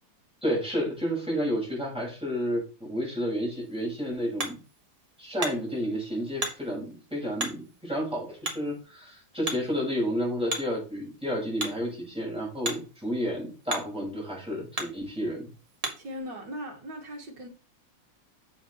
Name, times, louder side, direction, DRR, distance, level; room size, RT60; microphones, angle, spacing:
voice 1, 0.4-4.6 5.2-15.5, equal, 5° right, -3 dB, 5.0 m, -31 dB
Hammer, 3.5-16.2, right 1 dB, 20° right, 1.2 m, -39 dB
voice 2, 16.0-17.5, equal, 65° right, 2 dB, 2.5 m, -38 dB
8.6 x 7.3 x 3.0 m, 0.33 s
omnidirectional pair, 2.1 m